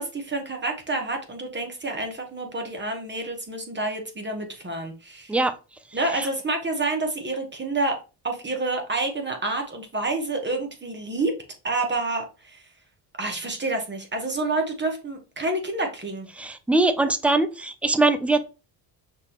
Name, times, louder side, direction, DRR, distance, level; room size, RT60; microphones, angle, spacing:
voice 1, 0.0-5.4 5.9-8.0 8.2-11.3 11.6-12.6 13.2-16.3, right 2 dB, 25° right, 3 dB, 1.3 m, -28 dB
voice 2, 16.4-18.4, right 2 dB, 5° right, 10 dB, 0.3 m, -22 dB
5.9 x 2.8 x 3.0 m, 0.31 s
cardioid pair, 95°, 47 cm